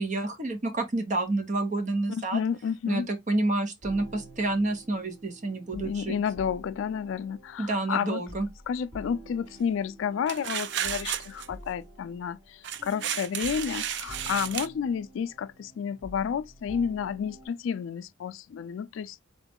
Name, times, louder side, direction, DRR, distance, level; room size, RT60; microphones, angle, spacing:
voice 1, 0.0-2.4 2.9-6.2 7.6-8.5, right 2 dB, 35° right, 0.7 m, -29 dB
voice 2, 2.1-3.1 5.7-8.2 8.7-19.2, left 7 dB, 75° left, 0.3 m, -31 dB
sound 1, 3.8-17.5, equal, 85° right, 2.3 m, -48 dB
sound 2, 10.3-11.5 12.6-14.7, right 10 dB, 55° right, 0.3 m, -33 dB
4.0 x 2.3 x 3.4 m
head